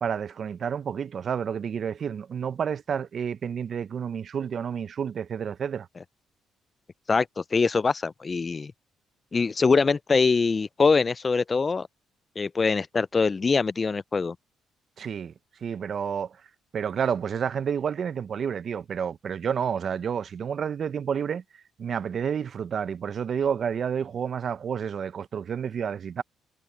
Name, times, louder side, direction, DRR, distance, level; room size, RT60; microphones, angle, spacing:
voice 1, 0.0-5.9 15.0-15.3 15.6-16.4 16.7-21.4 21.8-26.2, right 7 dB, 55° right, 0.7 m, -30 dB
voice 2, 7.1-8.7 9.3-11.9 12.4-14.4, left 4 dB, 35° left, 0.3 m, -23 dB
supercardioid pair, 70°, 0 cm